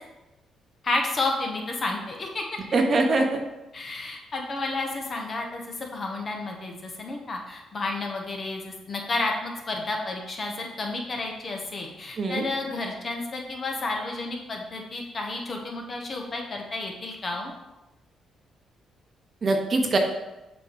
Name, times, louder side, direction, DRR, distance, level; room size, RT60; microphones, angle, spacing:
voice 1, 0.8-2.4 3.7-17.5, left 2 dB, 45° left, 1 dB, 1.3 m, -31 dB
voice 2, 2.7-3.4 12.2-12.4 19.4-20.0, right 2 dB, 45° right, 4 dB, 1.0 m, -22 dB
6.7 x 3.1 x 5.1 m, 0.99 s
supercardioid pair, 60°, 0 cm